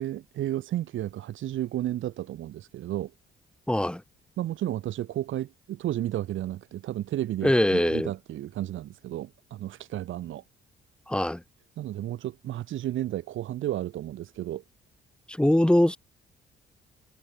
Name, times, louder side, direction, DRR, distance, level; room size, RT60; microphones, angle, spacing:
voice 1, 0.0-3.1 4.4-10.4 11.8-14.6, right 13 dB, 80° right, 2.3 m, -32 dB
voice 2, 3.7-4.0 7.4-8.1 11.1-11.4 15.3-16.0, left 1 dB, 5° left, 3.3 m, -22 dB
cardioid pair, 90°, 20 cm